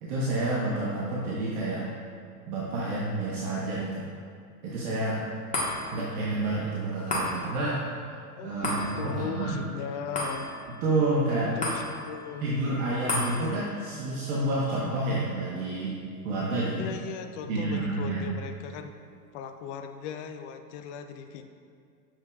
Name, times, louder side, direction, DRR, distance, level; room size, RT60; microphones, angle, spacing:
voice 1, 0.0-1.8 2.5-4.1 4.6-5.2 5.9-7.8 8.4-9.6 10.8-11.5 12.4-15.9 16.2-17.0 17.5-18.3, right 2 dB, 60° right, -6 dB, 1.3 m, -29 dB
sound 1, 5.5-18.1 18.6-18.7, left 1 dB, 15° left, 1.4 m, -37 dB
voice 2, 8.3-10.5 11.3-12.5 16.7-18.9 19.3-21.5, left 7 dB, 50° left, 8 dB, 0.5 m, -38 dB
7.3 x 5.9 x 2.4 m, 2.2 s
hypercardioid pair, 100°, 49 cm